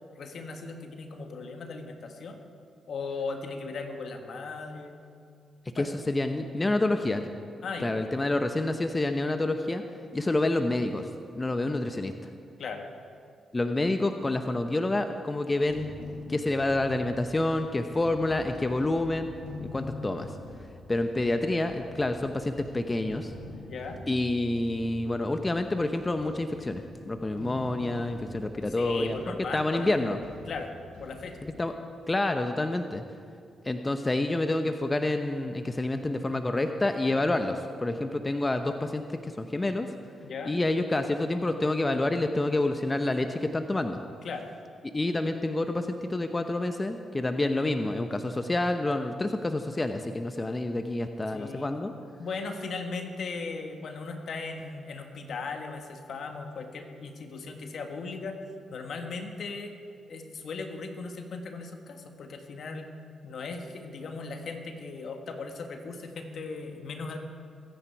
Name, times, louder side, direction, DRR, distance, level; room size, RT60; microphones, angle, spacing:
voice 1, 0.1-2.4 2.9-5.0 5.8-6.0 7.6-7.9 12.6-12.9 23.6-24.0 28.7-30.1 30.5-30.7 31.0-31.4 40.2-40.5 44.2-44.5 51.3-51.7 52.2-58.4 58.7-59.7 60.1-62.9 63.2-67.2, left 4 dB, 65° left, 5 dB, 1.6 m, -37 dB
voice 2, 5.7-7.2 7.8-9.8 10.1-11.1 11.3-12.1 13.5-15.9 16.3-19.3 19.6-20.3 20.9-23.3 24.1-29.2 29.5-30.2 31.6-31.7 32.1-33.0 33.6-39.9 40.5-44.0 44.8-51.9, left 2 dB, 25° left, 7 dB, 0.9 m, -28 dB
sound 1, 15.7-31.5, left 2 dB, 80° left, 4.0 m, -45 dB
22.5 x 9.9 x 4.8 m, 2.3 s
supercardioid pair, 45°, 0 cm